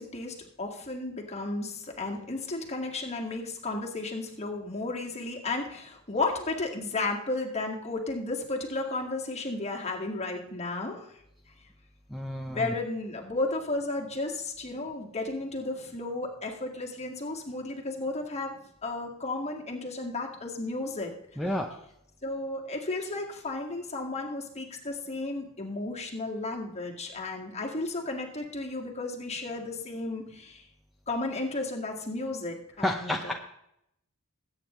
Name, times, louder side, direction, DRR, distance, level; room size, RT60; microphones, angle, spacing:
voice 1, 0.0-11.2 12.5-21.1 22.2-30.7 31.1-33.3, left 2 dB, 30° left, 0 dB, 1.9 m, -33 dB
voice 2, 12.1-12.7 21.4-21.7 32.8-33.3, left 1 dB, ahead, 2 dB, 0.7 m, -30 dB
21.0 x 8.9 x 3.1 m, 0.77 s
head